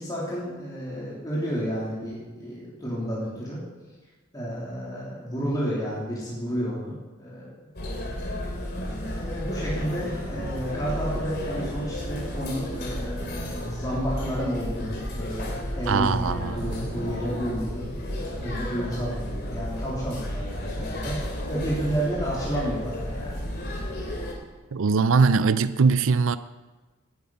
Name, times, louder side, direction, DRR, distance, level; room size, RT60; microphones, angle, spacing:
voice 1, 0.0-3.6 4.3-7.5 9.1-21.2 21.5-23.5, equal, 20° left, 3.1 m, -31 dB
sound 1, 7.8-24.3, left 1 dB, 50° left, 3.0 m, -33 dB
voice 2, 15.9-16.7 24.7-26.4, right 5 dB, 65° right, 0.5 m, -21 dB
17.5 x 9.6 x 5.5 m
head